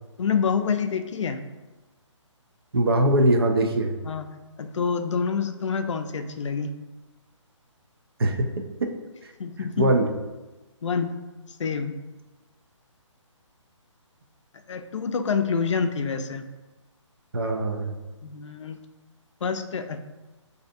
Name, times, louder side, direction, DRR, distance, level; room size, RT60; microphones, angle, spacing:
voice 1, 0.2-1.4 4.0-4.2 4.6-6.7 9.4-9.9 10.8-11.2 11.6-11.9 14.7-16.5 18.2-18.8 19.4-20.0, left 6 dB, 65° left, 7 dB, 0.4 m, -27 dB
voice 2, 2.7-4.0 8.2-8.5 8.8-8.9 9.8-10.1 17.3-17.9, right 1 dB, 50° right, 4 dB, 0.4 m, -21 dB
5.1 x 2.7 x 2.5 m, 1.1 s
hypercardioid pair, 170°, 16 cm